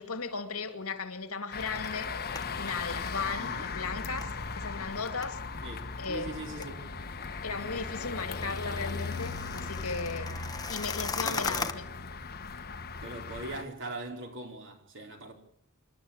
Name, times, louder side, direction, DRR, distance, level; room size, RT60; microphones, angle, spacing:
voice 1, 0.0-2.1 2.6-5.4 6.0-6.4 7.4-10.3 10.7-11.8, left 4 dB, 75° left, 2.3 m, -36 dB
sound 1, 1.5-13.6, left 4 dB, 45° left, 1.4 m, -38 dB
sound 2, 1.6-11.7, left 4 dB, 15° left, 1.1 m, -41 dB
voice 2, 3.4-3.7 5.6-6.8 11.2-11.8 13.0-15.3, right 2 dB, 60° right, 4.4 m, -41 dB
27.5 x 12.0 x 8.9 m
head